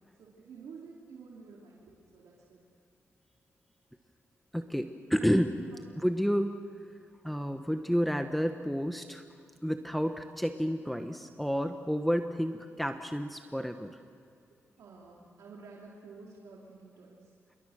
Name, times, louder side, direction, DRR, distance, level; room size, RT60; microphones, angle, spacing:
voice 1, 0.2-2.6 5.6-6.0 14.8-17.3, right 4 dB, 85° right, -3 dB, 3.0 m, -50 dB
voice 2, 4.5-5.6 6.0-6.6 7.2-9.2 9.6-14.0, equal, ahead, 6 dB, 1.2 m, -30 dB
27.5 x 23.0 x 6.5 m, 2.2 s
cardioid pair, 65°, 5 cm